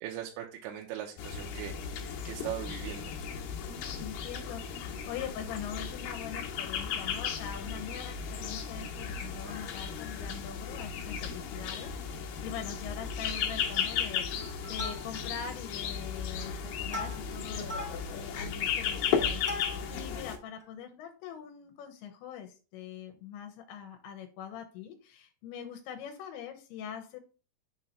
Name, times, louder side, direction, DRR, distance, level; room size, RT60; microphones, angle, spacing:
voice 1, 0.0-1.7 2.2-3.1, right 11 dB, 85° right, 1 dB, 2.8 m, -39 dB
sound 1, 1.2-20.4, left 7 dB, 70° left, 2.5 m, -35 dB
voice 2, 3.6-17.7 18.1-27.2, left 8 dB, 85° left, 4 dB, 2.9 m, -43 dB
Plucked string instrument, 9.2-10.1 10.5-10.6 10.8-11.0 11.5-12.2 12.5-12.6 12.9-13.3 13.6-14.0 14.4-15.4 16.0-20.1 20.6-20.7, left 1 dB, 10° right, 0.7 m, -43 dB
6.9 x 2.9 x 5.5 m, 0.34 s
omnidirectional pair, 4.6 m